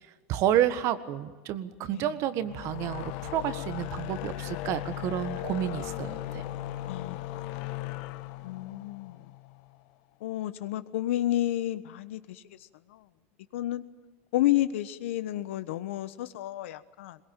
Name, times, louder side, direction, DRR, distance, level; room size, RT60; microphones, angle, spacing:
voice 1, 0.3-6.4, right 11 dB, 45° right, 13 dB, 1.6 m, -30 dB
sound 1, 2.4-9.8, left 14 dB, 60° left, 1.4 m, -37 dB
voice 2, 6.9-7.2 8.4-9.2 10.2-12.4 12.9-13.0 13.5-13.8 14.3-17.2, left 14 dB, 80° left, 14 dB, 1.2 m, -30 dB
22.0 x 19.5 x 9.1 m, 1.3 s
supercardioid pair, 140°, 7 cm